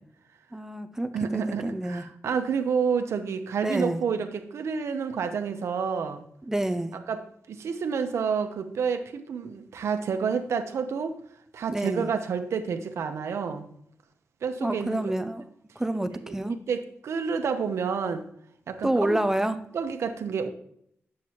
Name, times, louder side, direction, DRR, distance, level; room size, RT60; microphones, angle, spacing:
voice 1, 0.5-2.0 3.6-4.0 6.4-6.9 11.7-12.1 14.6-15.4 15.8-16.6 18.8-19.6, right 1 dB, 10° right, 9 dB, 0.4 m, -28 dB
voice 2, 1.1-6.2 7.1-11.2 11.5-13.7 14.4-15.1 16.2-16.3 16.7-18.2 18.7-19.2 19.7-20.5, right 6 dB, 90° right, 7 dB, 0.8 m, -29 dB
9.2 x 7.5 x 2.9 m, 0.69 s
wide cardioid pair, 140°, 5 cm